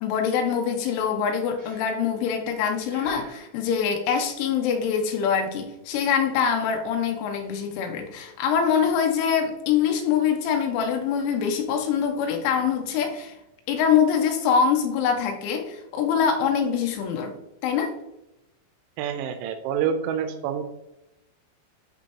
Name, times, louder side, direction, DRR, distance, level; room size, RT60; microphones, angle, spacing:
voice 1, 0.0-13.4 13.7-17.3 17.6-17.9, left 7 dB, 80° left, 4 dB, 3.1 m, -24 dB
Breathing, 1.6-2.2 2.9-3.5, right 1 dB, 50° right, 1.5 m, -47 dB
voice 2, 19.0-20.6, right 8 dB, 85° right, 7 dB, 3.3 m, -27 dB
12.0 x 4.3 x 2.8 m, 0.92 s
omnidirectional pair, 5.9 m